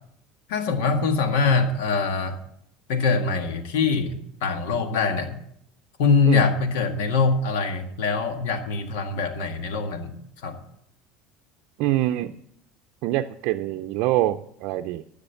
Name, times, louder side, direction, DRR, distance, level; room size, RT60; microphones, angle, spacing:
voice 1, 0.5-2.4 2.9-5.4 6.0-10.1 10.4-10.6, left 4 dB, 85° left, 6 dB, 1.8 m, -23 dB
voice 2, 11.8-12.4 13.0-15.0, right 15 dB, 65° right, 8 dB, 0.5 m, -25 dB
14.0 x 6.5 x 7.0 m, 0.71 s
supercardioid pair, 130°, 0 cm